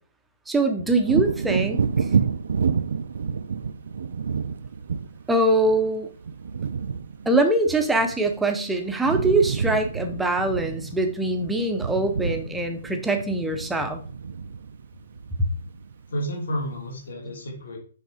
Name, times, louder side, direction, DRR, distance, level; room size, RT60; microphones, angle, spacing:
voice 1, 0.5-1.8 5.3-6.1 7.3-14.0, right 2 dB, 5° right, 4 dB, 0.6 m, -23 dB
Wind / Thunder, 1.0-8.6 8.9-16.1 16.5-16.7, right 6 dB, 65° right, 0.4 m, -29 dB
voice 2, 16.1-17.8, equal, 65° left, 1 dB, 2.8 m, -31 dB
6.5 x 5.7 x 4.8 m, 0.42 s
hypercardioid pair, 180°, 0 cm